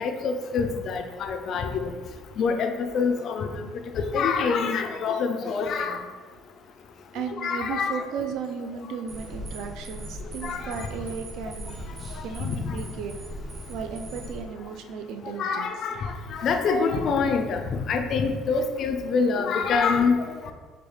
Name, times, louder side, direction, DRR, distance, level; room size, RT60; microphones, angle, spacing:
voice 1, 0.0-1.9 2.4-3.6 3.9-6.0 7.3-8.0 10.4-10.9 12.4-12.8 15.4-20.5, left 5 dB, 45° left, 6 dB, 0.3 m, -26 dB
voice 2, 7.1-11.8 12.2-13.1 13.7-15.7, right 6 dB, 65° right, 5 dB, 0.4 m, -35 dB
sound 1, 9.1-14.4, equal, 20° right, 0.6 m, -39 dB
4.7 x 2.3 x 3.1 m, 1.5 s
cardioid pair, 155°, 0 cm